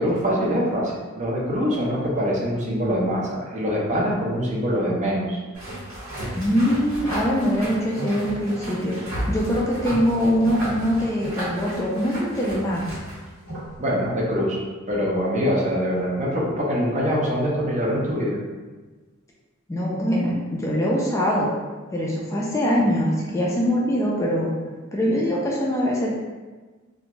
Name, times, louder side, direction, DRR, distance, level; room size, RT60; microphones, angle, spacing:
voice 1, 0.0-5.4 13.8-14.6 14.9-18.4, equal, 35° right, -4 dB, 0.6 m, -24 dB
sound 1, 5.5-13.8, equal, 80° right, 1.3 m, -33 dB
voice 2, 6.3-12.8 19.7-21.5 21.9-24.5 24.9-26.1, equal, 15° left, -4 dB, 0.3 m, -23 dB
2.4 x 2.2 x 2.9 m, 1.3 s
head